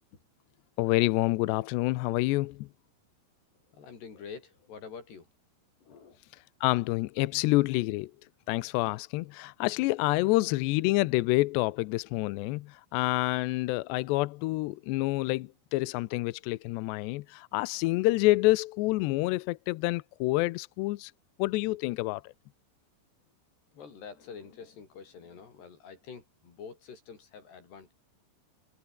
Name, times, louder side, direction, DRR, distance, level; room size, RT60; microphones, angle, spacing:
voice 1, 0.8-2.7 6.6-8.1 8.5-21.1 21.4-22.3, left 20 dB, 80° left, 2.5 m, -28 dB
voice 2, 3.7-5.3 5.8-6.2 10.5-10.6 23.7-27.9, left 6 dB, 60° left, 7.2 m, -47 dB
omnidirectional pair, 5.6 m